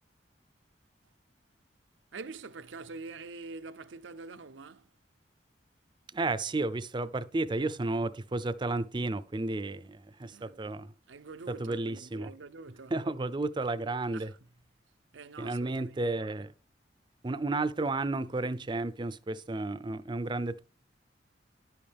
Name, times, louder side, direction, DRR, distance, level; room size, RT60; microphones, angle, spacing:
voice 1, 2.1-4.9 10.3-10.7 11.1-13.0 14.1-14.4 15.1-16.0, right 4 dB, 90° right, 0.7 m, -45 dB
voice 2, 6.1-10.9 11.5-12.3 12.9-14.3 15.4-16.5 17.2-20.6, right 2 dB, 25° right, 0.5 m, -32 dB
10.5 x 8.6 x 3.5 m
head